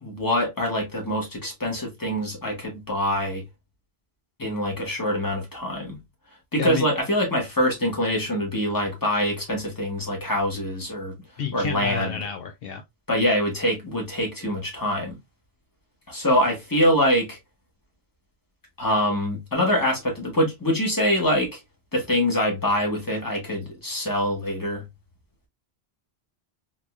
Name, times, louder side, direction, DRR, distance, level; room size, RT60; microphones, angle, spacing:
voice 1, 0.0-3.4 4.4-6.0 6.5-11.1 11.5-12.2 13.1-15.2 16.1-17.4 18.8-21.6 21.9-24.8, equal, 20° left, 1.3 m, -24 dB
voice 2, 11.4-12.8, left 7 dB, 70° left, 0.7 m, -30 dB
3.7 x 2.9 x 2.3 m
omnidirectional pair, 1.1 m